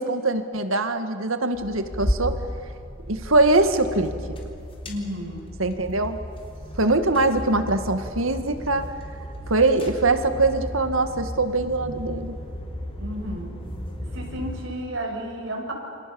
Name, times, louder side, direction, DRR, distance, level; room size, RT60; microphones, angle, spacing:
voice 1, 0.0-2.4 3.1-4.4 5.6-6.2 6.8-8.9 9.5-12.4, right 2 dB, 85° right, 8 dB, 2.1 m, -22 dB
sound 1, 1.5-14.7, equal, 30° left, 4.0 m, -34 dB
voice 2, 4.9-5.5 13.0-13.6 14.0-15.7, equal, 70° right, 1 dB, 6.4 m, -32 dB
29.0 x 27.5 x 7.2 m, 2.5 s
head